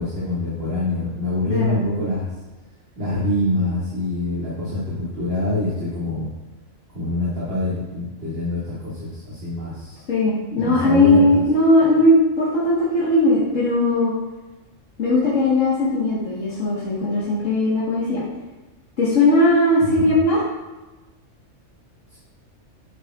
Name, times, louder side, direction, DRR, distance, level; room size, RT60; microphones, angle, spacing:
voice 1, 0.0-2.3 3.0-6.3 6.9-10.0 10.5-11.4 19.8-20.1 22.1-22.2, left 1 dB, 45° right, -9 dB, 2.2 m, -25 dB
voice 2, 1.5-1.8 10.1-14.1 15.0-18.2 19.0-20.4, left 1 dB, 65° left, -8 dB, 1.8 m, -18 dB
10.5 x 8.3 x 2.4 m, 1.1 s
omnidirectional pair, 1.4 m